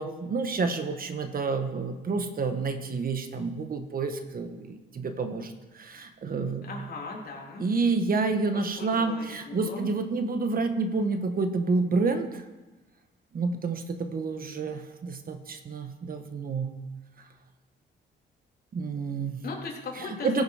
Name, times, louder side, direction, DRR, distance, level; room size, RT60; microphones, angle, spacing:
voice 1, 0.0-6.6 7.6-12.4 13.3-16.7 18.7-19.4 20.0-20.4, right 4 dB, 45° right, 7 dB, 1.3 m, -29 dB
voice 2, 6.7-7.7 8.5-9.9 19.4-20.4, left 4 dB, 50° left, -1 dB, 3.3 m, -38 dB
15.5 x 8.0 x 5.0 m, 1.1 s
cardioid pair, 90°, 20 cm